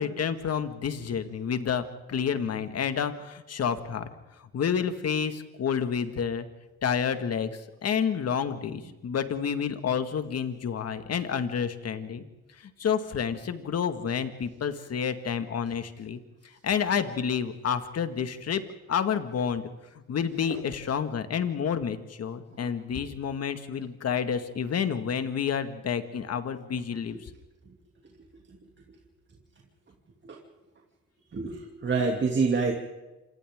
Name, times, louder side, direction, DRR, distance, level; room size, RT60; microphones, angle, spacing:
voice 1, 0.0-4.1 4.5-6.5 6.8-12.3 12.6-16.2 16.6-18.6 18.9-19.6 20.1-27.2, left 7 dB, 55° left, 9 dB, 2.0 m, -29 dB
voice 2, 31.3-32.7, right 4 dB, 40° right, 1 dB, 2.8 m, -26 dB
27.5 x 25.5 x 3.8 m, 1.1 s
cardioid pair, 90°, 30 cm